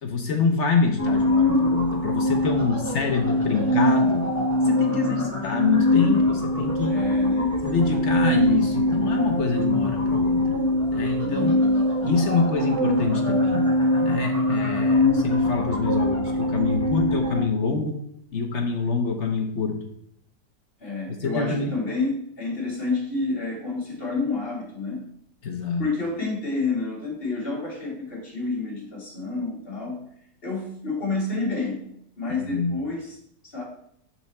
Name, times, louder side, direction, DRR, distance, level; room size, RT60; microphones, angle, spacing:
voice 1, 0.0-4.3 4.6-7.0 7.6-10.6 10.9-11.6 12.0-13.7 14.0-18.0 18.3-19.8 21.2-21.7 25.4-25.9 32.3-32.8, left 5 dB, 65° left, 4 dB, 0.7 m, -26 dB
sound 1, 1.0-17.4, left 1 dB, 15° left, 0.7 m, -23 dB
voice 2, 2.5-3.8 4.8-5.3 6.9-7.6 11.2-11.8 20.8-25.0 25.8-30.0 30.4-31.9 32.2-33.2 33.4-33.6, left 3 dB, 30° left, -3 dB, 1.8 m, -29 dB
5.8 x 4.3 x 4.1 m, 0.69 s
omnidirectional pair, 2.0 m